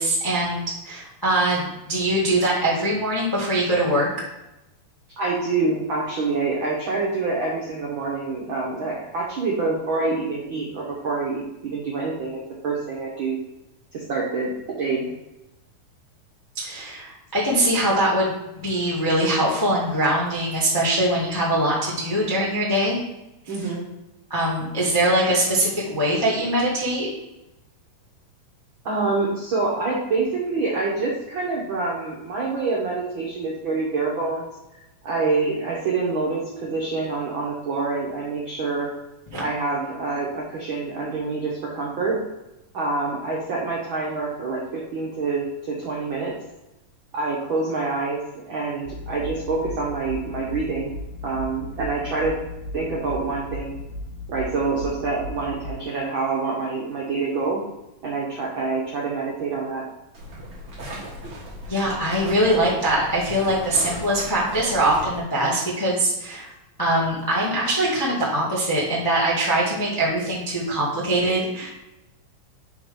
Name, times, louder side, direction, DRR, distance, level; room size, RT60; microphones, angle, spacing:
voice 1, 0.0-4.1 16.5-18.3 18.6-23.0 23.4-23.5 24.3-27.1 39.3-39.4 61.7-66.5 66.8-71.7, right 1 dB, 25° left, -5 dB, 0.4 m, -22 dB
voice 2, 5.2-13.4 13.9-14.5 14.8-15.1 23.5-23.8 28.8-34.5 35.0-38.9 39.4-42.2 42.7-46.3 47.1-50.9 51.2-52.3 52.7-53.8 54.3-57.6 58.0-59.8, right 3 dB, 85° right, -3 dB, 1.1 m, -26 dB
sound 1, 48.9-55.7, left 2 dB, 75° left, 1.6 m, -36 dB
sound 2, 60.1-65.2, right 1 dB, 45° right, 2.1 m, -37 dB
5.9 x 3.4 x 5.3 m, 0.95 s
omnidirectional pair, 3.9 m